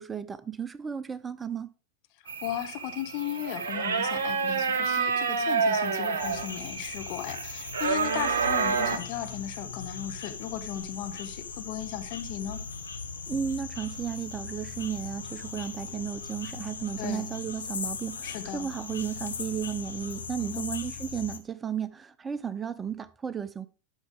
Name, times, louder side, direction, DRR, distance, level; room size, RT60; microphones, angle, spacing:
voice 1, 0.0-1.7 13.3-23.7, right 8 dB, 15° right, 0.4 m, -34 dB
voice 2, 2.2-12.6 17.0-17.3 18.2-18.7 20.4-20.6, left 11 dB, 45° left, 1.0 m, -36 dB
sound 1, 2.3-9.0, right 5 dB, 65° right, 1.0 m, -28 dB
sound 2, 6.2-21.4, left 5 dB, 70° left, 1.0 m, -39 dB
11.5 x 5.7 x 3.7 m
figure-of-eight pair, 90°, 0 cm